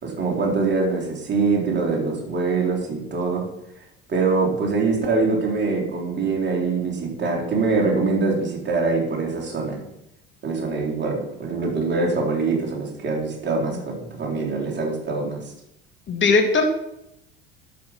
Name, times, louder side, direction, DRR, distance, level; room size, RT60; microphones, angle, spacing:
voice 1, 0.0-3.4 4.1-9.8 10.4-15.4, right 4 dB, 35° right, -2 dB, 3.8 m, -23 dB
voice 2, 16.1-16.7, left 4 dB, 40° left, 3 dB, 2.3 m, -19 dB
11.5 x 6.1 x 5.8 m, 0.82 s
hypercardioid pair, 65°, 31 cm